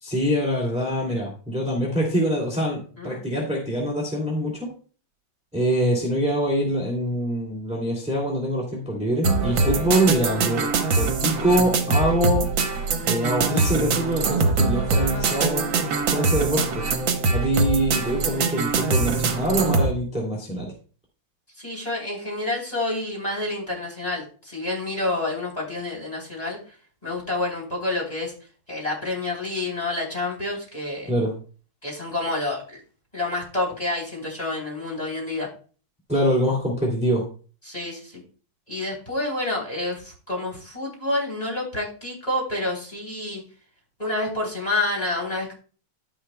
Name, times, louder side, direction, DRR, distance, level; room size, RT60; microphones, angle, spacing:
voice 1, 0.0-4.7 5.5-10.7 10.9-12.5 13.1-16.8 17.3-20.7 31.1-31.3 36.1-37.2, equal, 5° right, -3 dB, 2.5 m, -24 dB
sound 1, 9.2-19.9, right 4 dB, 75° right, 1.8 m, -23 dB
voice 2, 14.9-15.3 21.6-26.8 27.0-28.3 28.7-31.1 31.8-32.8 33.1-35.5 37.6-38.2 38.7-43.4 44.0-45.5, left 2 dB, 20° left, -2 dB, 3.7 m, -28 dB
11.5 x 10.0 x 2.3 m, 0.40 s
omnidirectional pair, 2.2 m